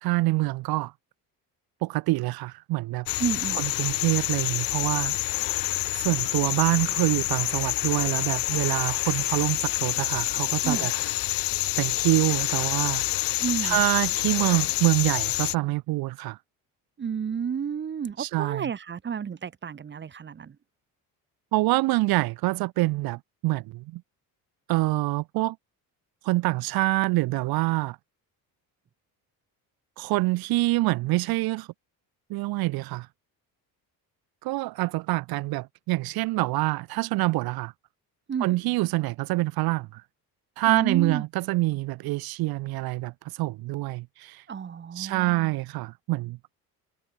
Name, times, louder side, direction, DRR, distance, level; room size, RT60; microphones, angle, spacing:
voice 1, 0.0-0.9 1.8-3.1 3.6-5.2 5.9-10.9 11.8-13.0 13.6-16.4 18.2-18.7 21.5-24.0 24.7-25.6 26.2-28.0 30.0-31.7 32.3-33.1 34.4-37.7 38.4-40.0 40.6-44.4 45.0-46.4, right 20 dB, 90° right, 1.8 m, -26 dB
sound 1, 3.1-15.5, left 17 dB, 70° left, 1.3 m, -27 dB
voice 2, 3.2-3.6 10.6-10.9 13.4-13.8 17.0-20.6 38.3-38.6 40.7-41.2 44.5-45.6, right 7 dB, 30° right, 4.0 m, -31 dB
cardioid pair, 155°, 36 cm